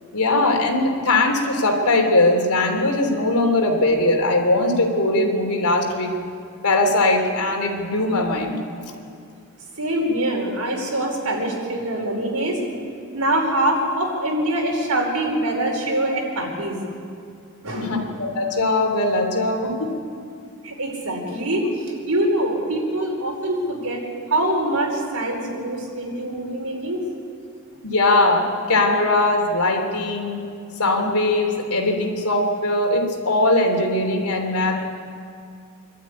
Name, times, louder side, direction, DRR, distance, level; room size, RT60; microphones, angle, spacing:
voice 1, 0.1-6.1 6.6-8.6 17.8-19.9 27.8-30.4 30.8-34.8, left 2 dB, 85° left, 2 dB, 3.3 m, -20 dB
voice 2, 9.7-12.6 13.1-16.8 17.6-18.1 20.6-21.7 22.0-24.0 24.3-27.0, right 1 dB, 80° right, 0 dB, 4.9 m, -24 dB
25.5 x 12.5 x 9.7 m, 2.4 s
head